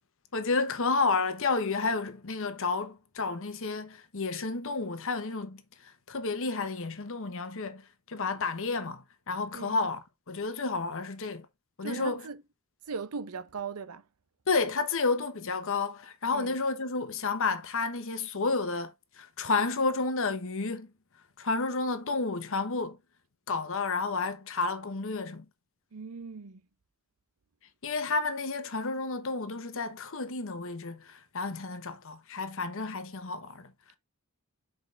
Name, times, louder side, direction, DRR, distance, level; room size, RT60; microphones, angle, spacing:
voice 1, 0.3-11.5 11.8-12.3 14.5-20.9 21.4-23.0 23.5-25.5 27.8-33.7, left 3 dB, 65° left, 1.1 m, -31 dB
voice 2, 11.8-12.4 12.9-14.0 16.3-16.6 25.9-26.6, right 5 dB, 85° right, 0.7 m, -39 dB
6.5 x 5.0 x 3.3 m
head